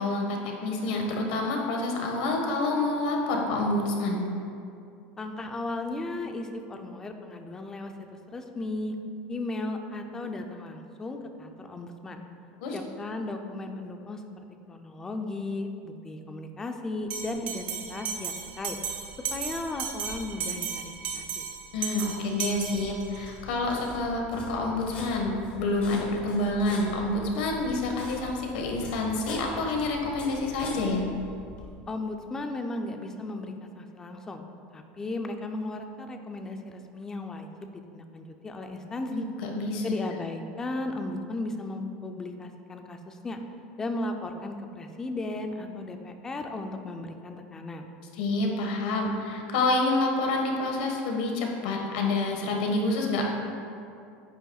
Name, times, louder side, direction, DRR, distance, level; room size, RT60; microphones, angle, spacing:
voice 1, 0.0-4.2 12.6-12.7 21.7-31.0 39.1-40.0 48.2-53.4, left 2 dB, 80° left, 1 dB, 1.5 m, -28 dB
voice 2, 5.2-7.9 8.3-8.9 9.3-12.2 12.7-14.2 14.7-18.8 19.3-20.7 21.1-21.4 31.9-34.4 34.7-39.2 39.8-43.4 43.8-47.9, left 2 dB, 10° left, 5 dB, 0.5 m, -35 dB
Bell, 17.1-23.3, right 7 dB, 35° right, 0.8 m, -35 dB
sound 1, 22.4-31.7, left 2 dB, 30° left, 1.3 m, -43 dB
10.0 x 9.0 x 2.4 m, 2.5 s
cardioid pair, 175°, 5 cm